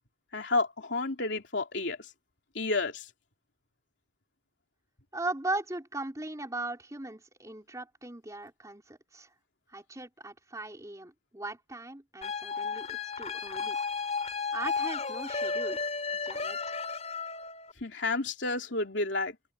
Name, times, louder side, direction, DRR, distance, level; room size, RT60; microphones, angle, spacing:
voice 1, 0.3-2.0 2.5-3.0 17.8-19.4, left 3 dB, 70° left, 3.3 m, -30 dB
voice 2, 5.1-9.3 9.7-13.8 14.5-15.8 16.2-16.8, right 2 dB, 20° right, 3.9 m, -38 dB
sound 1, 12.2-17.7, left 4 dB, 35° left, 4.6 m, -33 dB
head